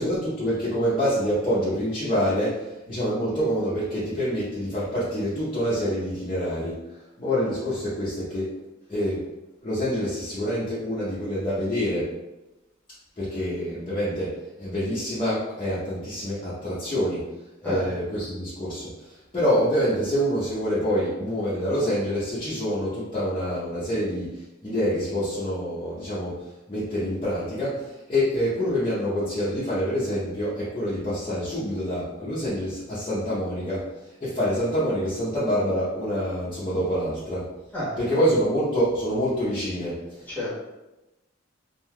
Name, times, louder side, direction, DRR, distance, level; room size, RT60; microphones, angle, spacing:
voice 1, 0.0-6.8 7.2-8.5 8.9-9.2 9.6-12.1 13.2-17.3 17.6-26.4 26.7-33.8 34.2-37.5 38.0-40.2, equal, 25° left, -12 dB, 0.7 m, -26 dB
voice 2, 37.7-38.1 40.3-40.5, left 1 dB, 10° left, -9 dB, 1.1 m, -29 dB
3.2 x 2.7 x 2.2 m, 1.0 s
head